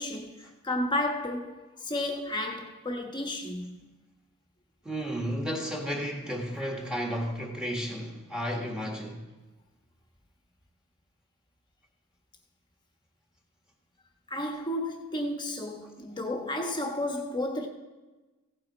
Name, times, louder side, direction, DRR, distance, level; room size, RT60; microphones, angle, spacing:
voice 1, 0.0-3.8 14.3-17.7, left 1 dB, 20° left, 1.1 m, -32 dB
voice 2, 4.8-9.2, equal, 5° right, 1.7 m, -33 dB
16.0 x 8.5 x 4.3 m
head